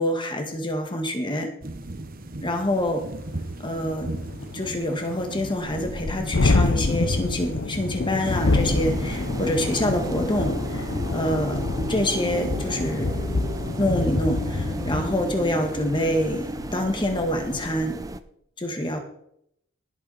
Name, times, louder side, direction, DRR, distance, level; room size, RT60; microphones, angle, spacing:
voice 1, 0.0-1.5 2.4-3.1 3.6-4.1 4.5-11.6 11.9-13.2 13.8-16.5 16.7-18.0 18.6-19.0, left 1 dB, 20° left, 4 dB, 1.8 m, -26 dB
sound 1, 1.6-15.8, right 1 dB, 40° right, 1.1 m, -40 dB
Thunderstorm, 2.9-3.0 3.3-3.4 3.7-17.3, left 2 dB, 60° left, 0.7 m, -27 dB
sound 2, 8.2-18.2, right 1 dB, 15° right, 0.6 m, -34 dB
19.0 x 8.4 x 4.3 m, 0.74 s
head